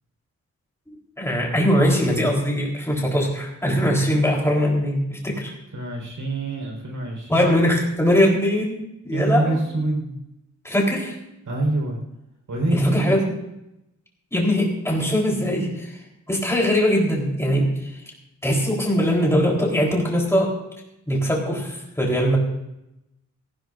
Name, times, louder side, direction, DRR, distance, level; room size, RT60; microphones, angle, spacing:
voice 1, 0.9-5.5 7.3-9.6 10.6-11.1 12.7-13.4 14.3-16.0 16.3-18.0 18.4-20.5 21.1-22.4, equal, 10° left, -2 dB, 4.1 m, -21 dB
voice 2, 5.7-7.5 9.1-10.2 11.5-12.0 12.5-13.1, right 2 dB, 75° right, 0 dB, 5.0 m, -25 dB
18.0 x 16.0 x 2.7 m, 0.87 s
wide cardioid pair, 145°, 30 cm